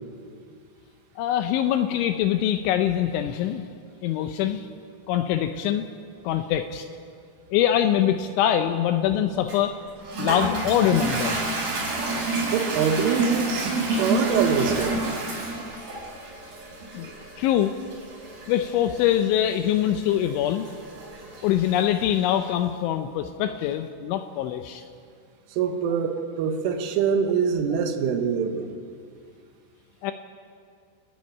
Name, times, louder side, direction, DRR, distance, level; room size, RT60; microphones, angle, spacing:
voice 1, 1.2-3.7 4.0-4.7 5.1-5.9 6.2-6.9 7.5-9.8 10.2-11.4 16.9-17.1 17.4-17.7 18.5-20.7 21.4-24.8 30.0-30.1, left 11 dB, 80° left, 8 dB, 2.8 m, -23 dB
Toilet flush, 9.5-22.3, right 2 dB, 55° right, 7.4 m, -29 dB
voice 2, 12.5-15.0 25.5-28.7, right 7 dB, 75° right, 6 dB, 3.5 m, -24 dB
29.5 x 10.0 x 9.4 m, 2.2 s
omnidirectional pair, 6.0 m